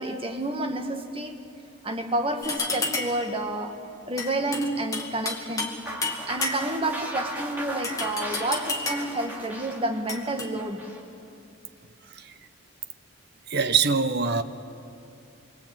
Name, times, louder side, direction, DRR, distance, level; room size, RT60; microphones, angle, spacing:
voice 1, 0.0-1.4 1.8-3.8 4.1-5.7 6.3-11.0, right 1 dB, 25° right, 1.8 m, -30 dB
sound 1, 2.4-3.3 4.2-5.8 6.0-6.9 7.8-9.2 10.1-10.5, left 3 dB, 15° left, 2.3 m, -31 dB
sound 2, 5.9-11.0, right 1 dB, 10° right, 3.0 m, -36 dB
voice 2, 13.5-14.4, right 5 dB, 55° right, 1.1 m, -23 dB
27.0 x 23.5 x 9.0 m
head